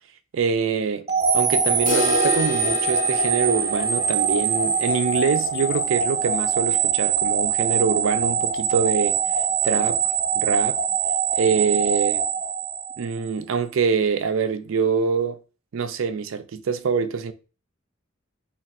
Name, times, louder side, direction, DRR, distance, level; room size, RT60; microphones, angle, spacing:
voice 1, 0.3-1.1 1.3-9.2 9.6-10.0 10.4-10.8 11.3-12.3 13.0-15.4 15.7-17.3, right 5 dB, 75° right, 0.4 m, -24 dB
sound 1, 1.1-13.2, right 6 dB, 30° right, 0.6 m, -23 dB
sound 2, 1.9-7.7 8.0-8.1 8.4-8.5 9.0-9.1 10.0-10.1, left 2 dB, 40° left, 0.6 m, -32 dB
2.4 x 2.4 x 4.0 m
head